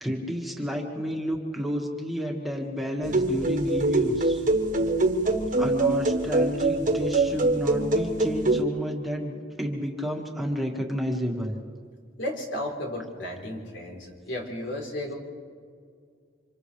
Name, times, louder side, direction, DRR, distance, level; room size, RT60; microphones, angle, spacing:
voice 1, 0.0-4.4 5.6-11.5, equal, ahead, -1 dB, 1.9 m, -31 dB
sound 1, 3.0-8.6, right 2 dB, 45° right, 1.4 m, -24 dB
voice 2, 12.2-15.1, left 1 dB, 75° left, 0 dB, 4.0 m, -33 dB
29.0 x 26.5 x 3.4 m, 2.1 s
head